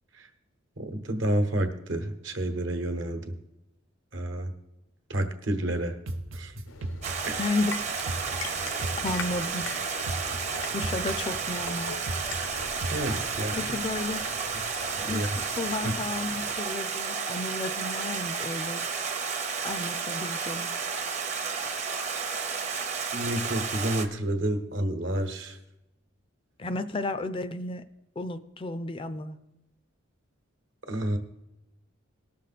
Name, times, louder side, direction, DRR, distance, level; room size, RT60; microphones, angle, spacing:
voice 1, 0.8-3.3 4.1-4.5 5.1-5.9 6.3-6.5 7.2-7.5 12.9-13.7 14.9-15.3 15.8-15.9 23.1-25.6 30.9-31.2, right 1 dB, 65° right, 6 dB, 1.2 m, -29 dB
sound 1, 6.1-13.9, right 2 dB, 85° right, 0.7 m, -37 dB
sound 2, 6.7-16.6, left 4 dB, 90° left, 0.8 m, -43 dB
Stream, 7.0-24.1, right 5 dB, 35° right, 0.8 m, -32 dB
voice 2, 7.4-7.7 9.0-9.6 10.7-11.9 13.6-14.2 15.1-15.2 15.6-18.8 19.6-20.7 26.6-27.8 28.2-29.4, left 2 dB, 25° left, 12 dB, 0.4 m, -32 dB
18.0 x 6.6 x 4.1 m, 0.92 s
head